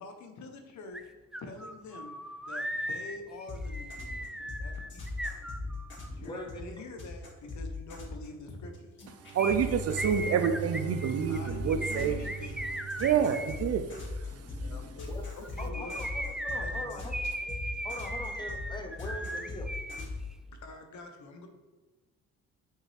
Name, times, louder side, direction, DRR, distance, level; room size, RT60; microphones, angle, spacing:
voice 1, 0.0-1.0 1.4-2.1 2.4-5.5 6.2-9.0 11.3-12.7 14.6-16.0 16.6-17.1 20.5-21.5, left 3 dB, 70° left, 1.0 m, -46 dB
sound 1, 0.9-1.0 1.3-6.1 9.4-13.6 15.4-20.1 20.3-20.4, right 1 dB, ahead, 0.3 m, -37 dB
sound 2, 3.5-10.5 10.9-20.2, left 3 dB, 40° left, 2.1 m, -39 dB
voice 2, 6.1-6.8 13.3-13.4 14.3-15.2 15.6-17.1 17.5-17.6 17.8-20.0, left 1 dB, 15° left, 1.0 m, -43 dB
Bowed string instrument, 9.0-14.0, right 7 dB, 85° right, 0.8 m, -40 dB
voice 3, 9.3-12.2 13.0-13.9, right 7 dB, 55° right, 0.6 m, -27 dB
5.8 x 5.7 x 3.4 m
cardioid pair, 90°, 30 cm